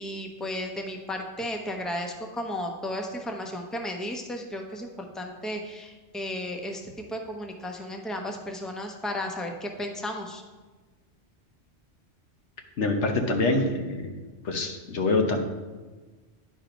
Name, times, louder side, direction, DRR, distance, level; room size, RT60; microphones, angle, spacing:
voice 1, 0.0-6.8 7.1-10.4, left 1 dB, ahead, 2 dB, 0.7 m, -34 dB
voice 2, 12.8-14.1 14.4-15.4, left 2 dB, 75° left, 4 dB, 1.2 m, -25 dB
10.0 x 4.9 x 5.1 m, 1.3 s
omnidirectional pair, 1.2 m